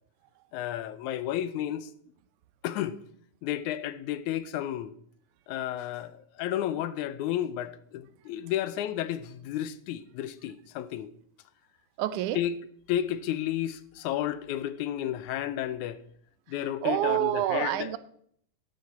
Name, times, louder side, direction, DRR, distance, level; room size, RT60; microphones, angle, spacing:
voice 1, 0.5-1.9 2.6-3.0 3.4-4.9 5.5-11.1 12.4-12.5 12.9-16.0 16.5-17.9, left 12 dB, 85° left, 2.0 m, -32 dB
voice 2, 12.0-12.4 16.8-18.0, right 13 dB, 85° right, 2.1 m, -27 dB
11.5 x 10.0 x 4.2 m
omnidirectional pair, 3.4 m